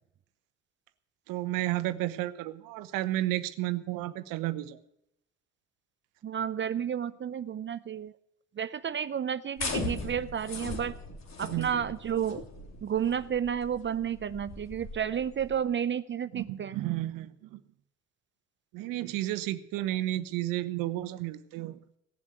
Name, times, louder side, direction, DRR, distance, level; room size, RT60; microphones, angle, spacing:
voice 1, 1.3-4.8 11.4-11.7 16.3-17.6 18.7-21.8, right 15 dB, 70° right, 12 dB, 1.1 m, -32 dB
voice 2, 6.2-8.1 8.6-10.9 11.4-12.4 12.8-16.8, right 8 dB, 35° right, 14 dB, 0.7 m, -31 dB
sound 1, 9.6-15.6, left 3 dB, 50° left, 3.5 m, -39 dB
18.0 x 7.4 x 8.1 m, 0.80 s
hypercardioid pair, 65°, 35 cm